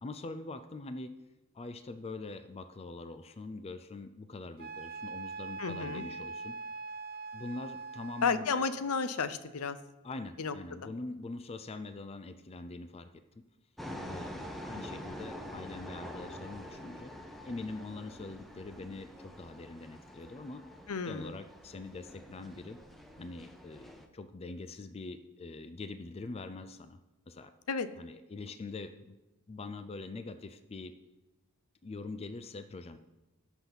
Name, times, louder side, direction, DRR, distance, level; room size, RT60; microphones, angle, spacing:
voice 1, 0.0-1.1 1.5-6.6 7.3-8.5 10.0-13.4 14.1-17.1 17.4-20.6 21.1-22.8 23.2-27.0 27.3-27.5 28.0-29.2 29.5-30.9 31.8-33.0, left 3 dB, 25° left, 10 dB, 0.4 m, -43 dB
Wind instrument woodwind instrument, 4.6-8.5, right 4 dB, 45° right, 0.6 m, -42 dB
voice 2, 5.6-6.1 8.2-9.8 10.4-10.5 20.9-21.3 27.7-27.9, left 5 dB, 70° left, 12 dB, 0.6 m, -32 dB
sound 1, 13.8-24.1, equal, ahead, 0.8 m, -46 dB
17.5 x 6.1 x 4.0 m, 1.1 s
head